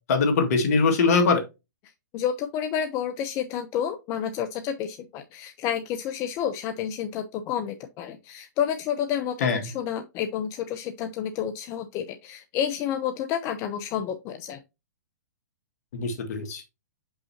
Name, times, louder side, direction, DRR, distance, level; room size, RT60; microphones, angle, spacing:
voice 1, 0.1-1.4 9.4-9.7 15.9-16.6, left 4 dB, 60° left, 5 dB, 2.0 m, -22 dB
voice 2, 2.1-14.6, left 9 dB, 30° left, 7 dB, 0.7 m, -30 dB
6.9 x 5.6 x 2.8 m, 0.24 s
hypercardioid pair, 130°, 9 cm